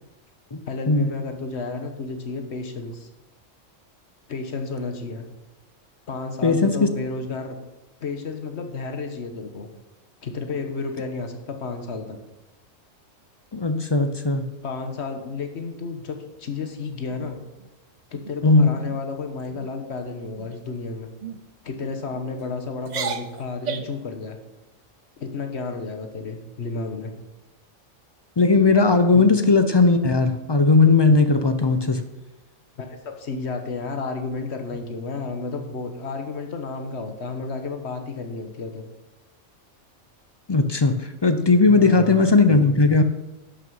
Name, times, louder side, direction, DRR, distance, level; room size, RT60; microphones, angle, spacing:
voice 1, 0.7-3.1 4.3-5.2 6.1-7.6 8.0-9.7 10.2-12.2 14.6-17.4 18.1-21.1 21.6-24.4 25.2-27.1 29.1-29.2 32.8-38.8 41.7-42.2, left 4 dB, 60° left, 6 dB, 1.4 m, -32 dB
voice 2, 6.4-6.9 13.5-14.5 18.4-18.7 28.4-32.0 40.5-40.9 41.2-43.0, left 3 dB, 40° left, 9 dB, 0.3 m, -17 dB
sound 1, 17.1-17.7 18.1-18.4 18.7-19.0 19.4-19.7 20.4-20.7 21.2-21.4 22.1-22.5 22.8-24.0, right 6 dB, 45° right, 0.6 m, -34 dB
10.5 x 6.4 x 5.5 m, 1.0 s
omnidirectional pair, 1.3 m